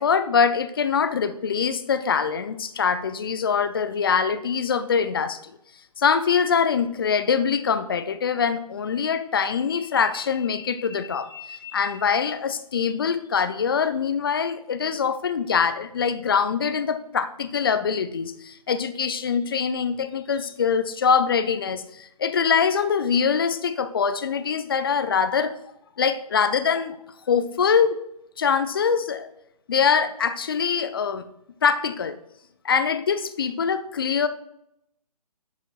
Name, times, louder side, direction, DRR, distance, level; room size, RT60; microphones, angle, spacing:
voice 1, 0.0-5.4 6.0-25.5 26.0-27.0 27.3-28.0 28.4-29.3 29.7-31.3 31.6-32.2 32.6-34.3, left 6 dB, 35° left, 13 dB, 0.5 m, -23 dB
10.5 x 7.0 x 2.3 m, 0.79 s
figure-of-eight pair, 145°, 21 cm